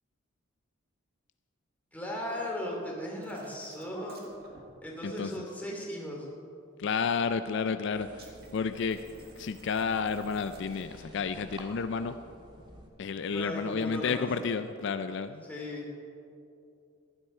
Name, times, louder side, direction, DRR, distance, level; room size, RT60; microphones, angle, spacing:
voice 1, 1.9-4.3 4.8-6.3 13.3-14.3 15.4-16.0, left 1 dB, 10° left, -3 dB, 2.6 m, -37 dB
sound 1, 3.2-4.6 8.1-11.1 13.6-13.9, right 2 dB, 50° right, 1.9 m, -55 dB
voice 2, 5.0-5.4 6.8-9.0 9.4-12.2 13.0-15.4, left 5 dB, 60° left, 10 dB, 0.4 m, -31 dB
sound 2, 7.9-12.9, equal, 25° right, 1.6 m, -51 dB
15.0 x 12.0 x 4.4 m, 2.6 s
head